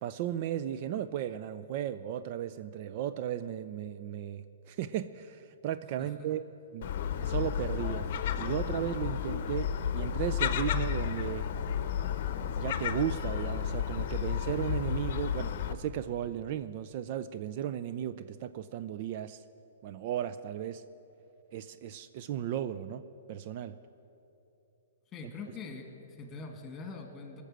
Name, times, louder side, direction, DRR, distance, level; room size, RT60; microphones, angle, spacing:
voice 1, 0.0-6.4 6.7-6.9 7.3-8.1 8.4-11.5 12.5-19.4 19.8-20.8 21.5-23.0 23.3-23.8, right 10 dB, 45° right, 12 dB, 0.4 m, -35 dB
voice 2, 6.0-6.3 25.1-27.4, left 4 dB, 20° left, 4 dB, 2.0 m, -43 dB
Gull seagull, 6.8-15.7, left 9 dB, 55° left, 0.8 m, -32 dB
19.5 x 6.8 x 7.7 m, 2.9 s
hypercardioid pair, 130°, 0 cm